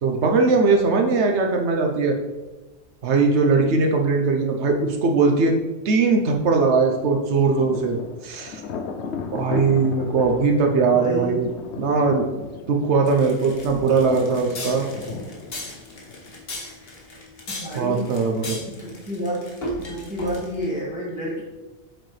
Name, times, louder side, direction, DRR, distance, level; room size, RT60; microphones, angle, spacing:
voice 1, 0.0-2.2 3.0-5.5 5.8-8.0 8.2-8.6 9.3-11.5 11.8-12.2 12.7-14.9 17.7-18.6, right 4 dB, 90° right, 2 dB, 1.1 m, -20 dB
Thunder, 7.1-16.6, left 5 dB, 90° left, 1.0 m, -35 dB
voice 2, 10.9-11.4 17.5-18.1 18.7-19.4 19.8-21.4, equal, 5° right, -8 dB, 2.1 m, -29 dB
sound 1, 13.1-20.7, equal, 60° left, 1.6 m, -36 dB
7.9 x 6.5 x 3.3 m, 1.1 s
omnidirectional pair, 1.1 m